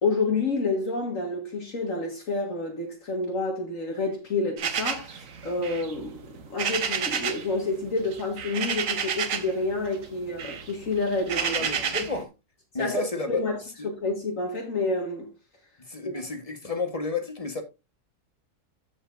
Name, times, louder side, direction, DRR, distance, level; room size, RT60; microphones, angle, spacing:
voice 1, 0.0-6.2 6.5-11.7 12.8-13.6 13.8-15.3 16.0-16.1, left 3 dB, 60° left, 1.9 m, -29 dB
sound 1, 4.6-7.5 7.8-9.6 9.9-12.2, right 7 dB, 60° right, 1.4 m, -30 dB
voice 2, 11.4-12.3 12.7-13.4 15.9-17.6, left 3 dB, 25° left, 1.2 m, -31 dB
14.5 x 5.7 x 2.5 m
omnidirectional pair, 1.6 m